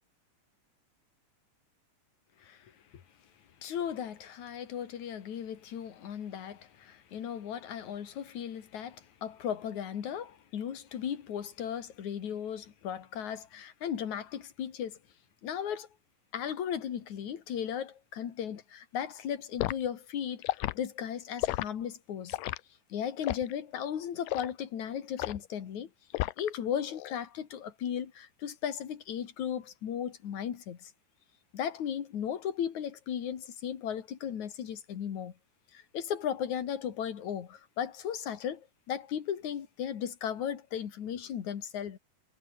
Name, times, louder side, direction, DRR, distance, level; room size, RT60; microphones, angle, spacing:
voice 1, 2.4-2.7 3.6-15.0 15.4-15.9 16.3-22.4 22.9-25.9 26.4-30.9 31.5-35.3 35.7-42.0, left 9 dB, 60° left, 3.3 m, -36 dB
Liquid, 19.6-19.8 20.4-20.8 21.4-21.7 22.3-22.6 23.2-23.5 24.3-24.5 25.2-25.5 26.1-26.6 26.9-27.2, left 17 dB, 80° left, 2.3 m, -32 dB
omnidirectional pair, 3.9 m